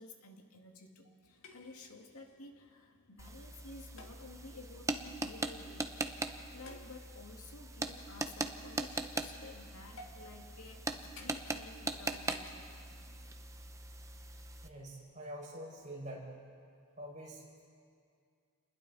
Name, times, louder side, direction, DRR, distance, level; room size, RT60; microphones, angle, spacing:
voice 1, 0.0-5.9 6.5-12.7, left 3 dB, 90° left, 2 dB, 2.1 m, -53 dB
sound 1, 1.2-13.4, left 2 dB, 65° left, 1.9 m, -59 dB
sound 2, 3.2-14.7, right 2 dB, 15° right, 0.8 m, -41 dB
voice 2, 14.6-16.3 17.0-17.7, right 1 dB, 35° right, -4 dB, 5.7 m, -46 dB
30.0 x 21.0 x 4.1 m, 2.3 s
head